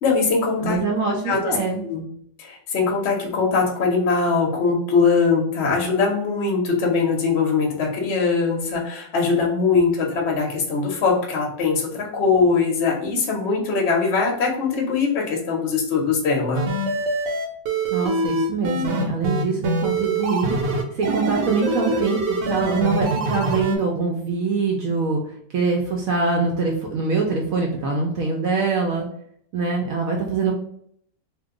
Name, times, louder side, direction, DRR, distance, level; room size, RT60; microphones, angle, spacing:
voice 1, 0.0-0.8 1.0-1.6 1.8-2.0 2.4-16.7, left 4 dB, 55° left, 0 dB, 0.8 m, -21 dB
voice 2, 0.6-1.8 17.9-20.5 20.9-25.2 25.5-29.1 29.5-30.6, right 4 dB, 70° right, 0 dB, 0.8 m, -23 dB
sound 1, 16.5-23.8, right 2 dB, 85° right, 1.3 m, -24 dB
2.8 x 2.1 x 3.6 m, 0.67 s
omnidirectional pair, 1.9 m